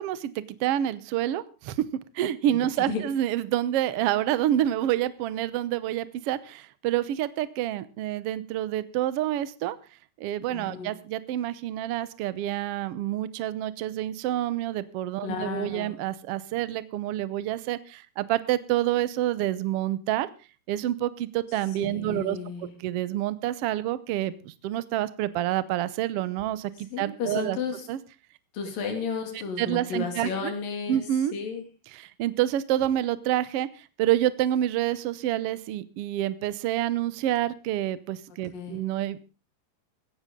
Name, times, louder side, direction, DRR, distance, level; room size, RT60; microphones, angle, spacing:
voice 1, 0.0-1.9 2.1-9.8 10.2-20.3 20.7-27.6 27.9-28.0 29.6-30.5 30.9-31.3 31.9-39.2, right 12 dB, 75° right, 15 dB, 1.4 m, -28 dB
voice 2, 10.5-10.9 15.2-16.0 21.8-22.7 26.9-27.9 28.5-31.0 31.3-31.6 38.5-38.8, left 5 dB, 90° left, 5 dB, 4.2 m, -33 dB
17.0 x 14.5 x 3.7 m, 0.33 s
omnidirectional pair, 3.8 m